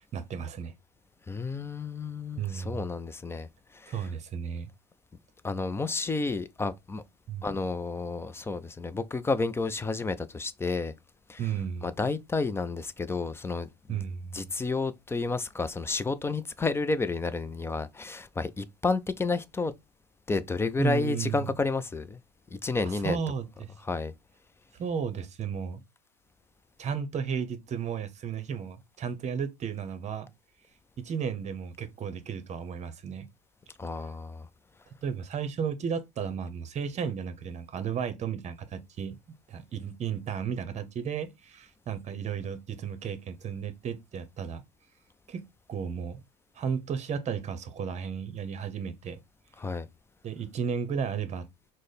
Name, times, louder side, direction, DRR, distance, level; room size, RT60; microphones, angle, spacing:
voice 1, 0.1-0.7 2.4-2.9 3.9-4.7 7.3-7.5 11.4-11.9 13.9-14.5 20.8-21.6 23.0-23.7 24.8-25.8 26.8-30.3 31.0-33.3 35.0-39.2 39.5-44.6 45.3-45.4 45.7-46.2 46.5-49.2 50.2-51.5, right 7 dB, 30° right, 0.8 m, -33 dB
voice 2, 1.3-4.0 5.4-7.0 7.4-10.9 11.3-11.4 11.8-14.0 14.3-19.7 20.3-22.2 22.5-23.2 23.8-24.1 33.8-34.5 49.6-49.9, left 3 dB, 10° left, 0.4 m, -31 dB
4.8 x 2.1 x 4.1 m
hypercardioid pair, 85°, 21 cm